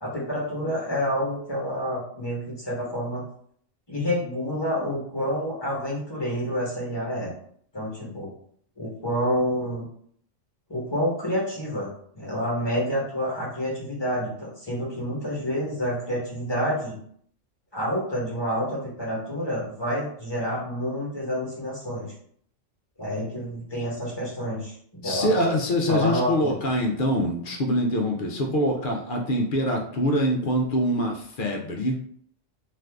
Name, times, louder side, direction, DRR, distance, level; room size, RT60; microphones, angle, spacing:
voice 1, 0.0-3.2 3.9-7.3 7.7-8.3 8.8-9.9 10.7-11.9 12.2-17.0 17.7-22.1 23.0-25.3 25.9-26.5, equal, 20° left, -5 dB, 0.9 m, -28 dB
voice 2, 25.0-32.0, equal, 60° left, 0 dB, 0.5 m, -24 dB
2.6 x 2.5 x 3.4 m, 0.63 s
omnidirectional pair, 1.4 m